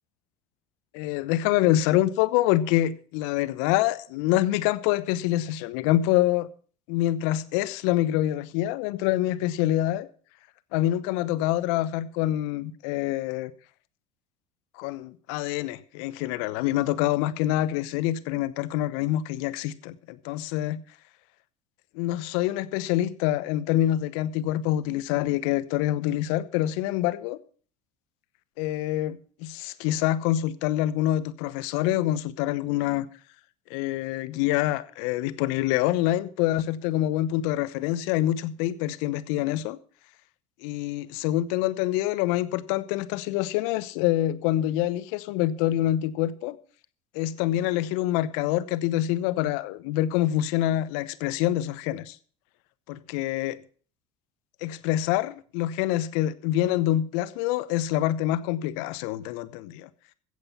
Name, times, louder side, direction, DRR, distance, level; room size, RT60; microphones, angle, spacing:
voice 1, 0.9-6.5 6.9-10.1 10.7-13.5 14.8-20.8 21.9-27.4 28.6-33.1 33.7-39.8 40.6-46.6 47.1-52.2 52.9-53.6 54.6-59.9, left 14 dB, 70° left, 1.0 m, -26 dB
15.5 x 8.0 x 5.7 m
hypercardioid pair, 75°, 17 cm